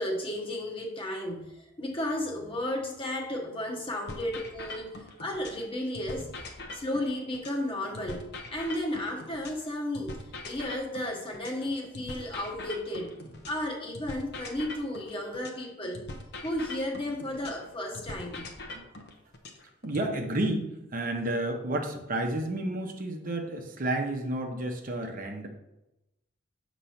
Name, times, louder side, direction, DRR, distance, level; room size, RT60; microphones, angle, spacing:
voice 1, 0.0-1.5 1.8-4.9 5.2-6.3 6.7-8.2 8.5-10.2 10.4-16.0 16.4-18.5, left 1 dB, 30° left, 0 dB, 1.0 m, -33 dB
sound 1, 4.1-5.7 5.9-9.7 9.9-13.7 13.9-17.7 17.9-20.1, left 2 dB, 60° left, 0.8 m, -42 dB
voice 2, 19.8-25.5, right 1 dB, 45° right, 2 dB, 0.8 m, -31 dB
6.7 x 3.1 x 5.7 m, 0.93 s
head